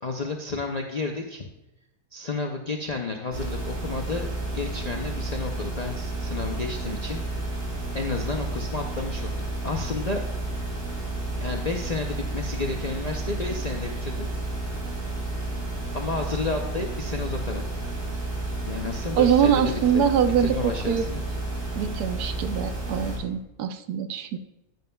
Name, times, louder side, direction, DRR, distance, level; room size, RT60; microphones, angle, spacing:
voice 1, 0.0-1.5 2.1-4.3 4.5-7.2 7.9-9.4 9.6-10.2 11.4-14.3 15.9-17.8 18.6-20.1 20.4-21.2, left 3 dB, 55° left, 2 dB, 0.4 m, -31 dB
sound 1, 3.3-23.2, right 2 dB, 55° right, 2.8 m, -31 dB
voice 2, 19.2-21.0 21.8-24.4, right 8 dB, 90° right, 10 dB, 1.2 m, -23 dB
10.5 x 9.2 x 2.3 m, 0.92 s
omnidirectional pair, 1.6 m